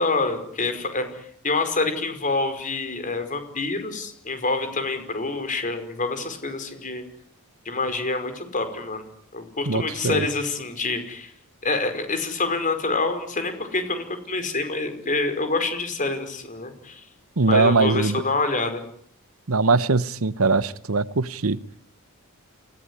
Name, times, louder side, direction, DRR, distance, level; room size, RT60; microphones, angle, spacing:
voice 1, 0.0-7.0 7.7-9.0 9.3-11.3 11.6-17.0 17.5-18.8, left 3 dB, 35° left, 8 dB, 5.3 m, -27 dB
voice 2, 9.7-10.3 17.4-18.2 19.5-21.6, right 3 dB, 65° right, 16 dB, 1.0 m, -21 dB
29.0 x 17.5 x 9.8 m, 0.65 s
head